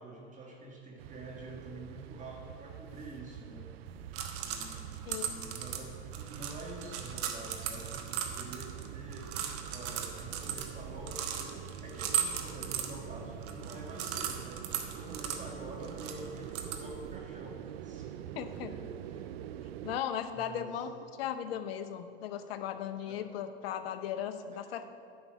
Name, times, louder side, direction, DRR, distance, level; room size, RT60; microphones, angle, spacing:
voice 1, 0.0-4.1 4.4-9.5 9.7-19.3 20.3-20.9 23.0-23.2 24.5-24.7, right 2 dB, 25° right, 0 dB, 1.8 m, -47 dB
sound 1, 1.0-20.0, right 11 dB, 75° right, 0.5 m, -45 dB
sound 2, 3.9-17.2, right 8 dB, 50° right, 1.2 m, -38 dB
voice 2, 18.4-18.7 19.8-20.9 21.2-24.9, left 9 dB, 70° left, 10 dB, 0.9 m, -37 dB
10.5 x 5.5 x 7.4 m, 2.4 s
hypercardioid pair, 100°, 31 cm